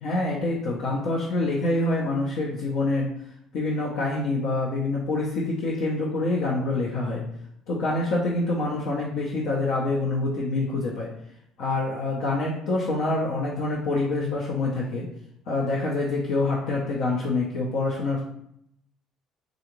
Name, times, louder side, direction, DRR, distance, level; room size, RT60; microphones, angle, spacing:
voice 1, 0.0-3.1 3.5-7.2 7.7-11.1 11.6-15.1 15.5-18.2, left 2 dB, 75° left, -4 dB, 0.6 m, -26 dB
3.7 x 2.4 x 3.0 m, 0.75 s
supercardioid pair, 75°, 0 cm